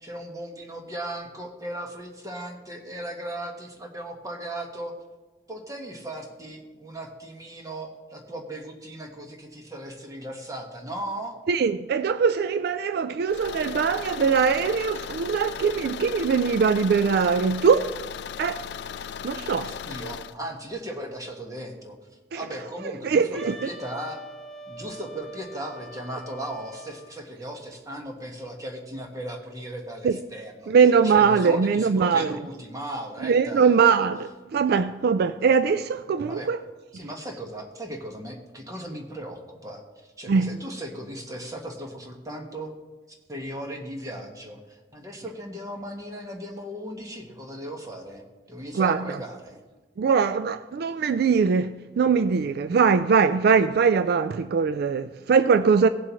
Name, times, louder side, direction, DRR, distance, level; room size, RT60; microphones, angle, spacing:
voice 1, 0.0-4.9 5.5-11.4 19.6-22.0 22.3-24.2 24.7-30.7 31.0-33.7 36.3-36.5 36.9-42.7 43.3-49.6, right 1 dB, 20° right, 1.5 m, -37 dB
voice 2, 11.5-17.9 18.4-18.6 19.2-19.7 22.3-22.4 23.0-23.5 30.0-30.2 30.7-32.3 33.2-36.6 40.3-40.5 48.7-49.1 50.0-55.9, right 5 dB, 60° right, 0.3 m, -21 dB
Car / Engine, 13.3-20.4, left 8 dB, 65° left, 0.4 m, -37 dB
Wind instrument woodwind instrument, 23.3-27.2, right 1 dB, 5° left, 1.0 m, -44 dB
18.5 x 7.5 x 3.1 m
head